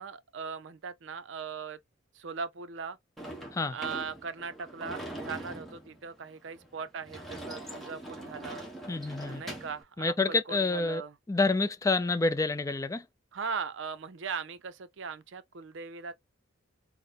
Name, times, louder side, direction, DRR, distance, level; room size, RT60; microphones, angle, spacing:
voice 1, 0.0-1.8 2.1-3.0 3.7-8.7 9.3-11.1 13.3-16.1, right 5 dB, 65° right, 0.5 m, -39 dB
Sliding door / Slam, 3.2-9.8, right 1 dB, ahead, 1.0 m, -43 dB
voice 2, 8.9-9.4 10.0-11.0 11.3-13.1, left 3 dB, 15° left, 0.4 m, -28 dB
4.0 x 2.1 x 3.6 m
head